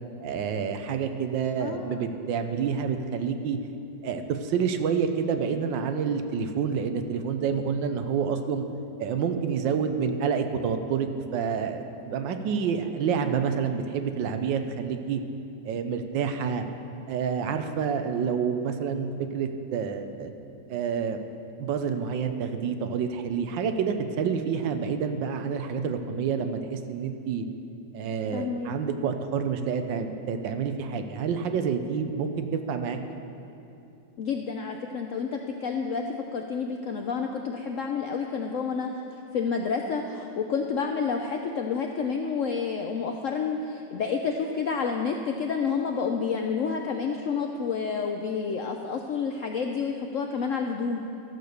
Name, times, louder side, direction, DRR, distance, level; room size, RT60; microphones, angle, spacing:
voice 1, 0.2-3.6 4.0-8.7 9.0-15.2 15.6-16.6 17.1-20.3 20.7-21.2 21.6-27.4 27.9-33.0, right 6 dB, 85° right, 7 dB, 1.5 m, -28 dB
voice 2, 1.6-2.1 28.3-28.7 34.2-36.0 36.3-38.9 39.3-51.0, left 5 dB, 75° left, 3 dB, 0.7 m, -29 dB
13.5 x 6.8 x 6.6 m, 2.8 s
omnidirectional pair, 2.0 m